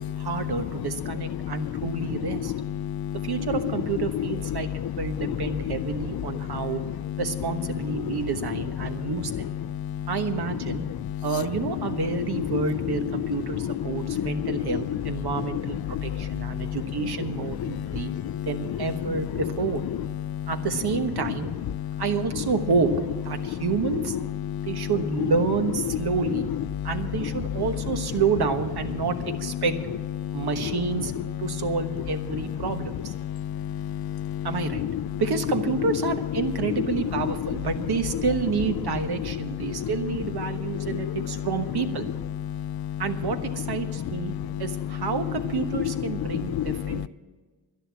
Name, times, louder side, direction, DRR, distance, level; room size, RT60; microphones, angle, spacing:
voice 1, 0.2-2.5 3.2-4.7 5.0-6.8 7.2-9.5 10.1-10.8 11.2-18.1 18.4-19.8 20.5-21.5 22.0-22.9 23.2-24.2 24.7-26.5 26.8-29.7 30.3-31.1 31.4-33.1 34.4-34.8 35.2-42.1 43.0-44.3 44.6-47.1, right 5 dB, 65° right, 7 dB, 1.2 m, -29 dB
voice 2, 2.8-3.3 4.6-4.9 5.2-5.5 6.5-6.7 8.1-8.2 8.8-9.1 9.7-10.1 11.0-11.2 13.9-14.6 15.9-16.8 17.6-18.5 20.3-20.5 21.7-22.0 24.5-24.9 26.7-26.9 30.2-30.5 33.2-34.5 34.8-34.9 39.7-39.9 40.6-41.2 42.5-43.0 44.1-44.6 46.3-47.1, left 10 dB, 60° left, 17 dB, 0.5 m, -31 dB
11.5 x 11.0 x 7.3 m, 1.4 s
cardioid pair, 85°, 41 cm